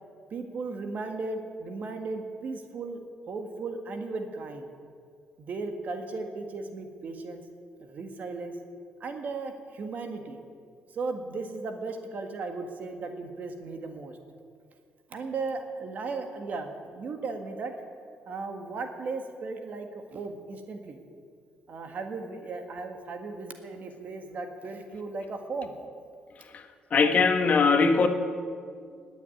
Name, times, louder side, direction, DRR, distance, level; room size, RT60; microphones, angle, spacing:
voice 1, 0.3-3.0 3.3-4.7 5.4-7.4 7.8-8.5 9.0-10.4 10.9-14.2 15.1-17.7 18.3-21.0 21.7-25.8, right 3 dB, 50° right, 5 dB, 1.7 m, -36 dB
voice 2, 26.9-28.1, left 4 dB, 45° left, 7 dB, 1.4 m, -21 dB
20.0 x 7.3 x 9.8 m, 2.1 s
cardioid pair, 135°, 4 cm